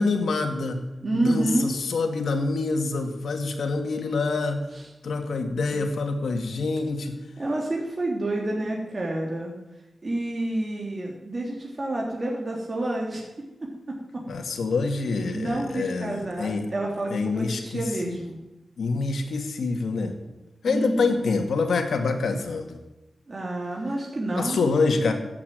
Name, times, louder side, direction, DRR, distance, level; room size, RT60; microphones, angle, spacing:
voice 1, 0.0-0.8 1.1-4.6 5.0-7.2 14.3-16.7 17.1-18.2 18.8-20.1 20.6-22.8 24.3-25.1, left 3 dB, 85° left, 5 dB, 2.2 m, -26 dB
voice 2, 1.0-1.7 4.7-4.8 7.4-9.5 10.0-13.3 14.1-14.2 15.3-18.4 20.7-21.2 23.3-24.6, right 1 dB, 40° right, -2 dB, 3.4 m, -28 dB
15.0 x 8.6 x 9.4 m, 1.0 s
cardioid pair, 60°, 0 cm